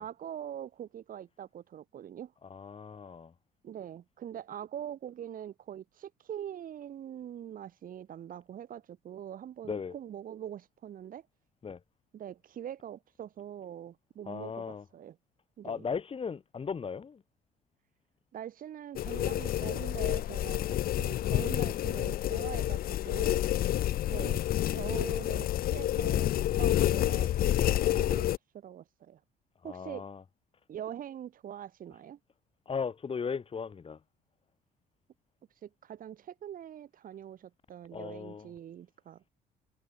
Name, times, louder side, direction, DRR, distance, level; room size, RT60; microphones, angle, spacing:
voice 1, 0.0-2.3 3.6-11.2 12.1-15.2 15.6-15.9 18.3-20.6 21.0-23.4 24.1-24.4 24.7-28.3 28.5-29.2 29.6-30.0 30.7-32.2 35.6-39.2, right 10 dB, 55° right, 6.5 m, -43 dB
voice 2, 2.4-3.3 9.7-10.0 11.6-11.8 14.3-14.8 15.6-17.2 20.7-20.8 24.2-24.3 29.6-30.2 32.7-34.0 37.9-38.5, left 6 dB, 35° left, 7.8 m, -37 dB
sound 1, 19.0-28.4, left 13 dB, 60° left, 0.9 m, -29 dB
cardioid pair, 110°, 17 cm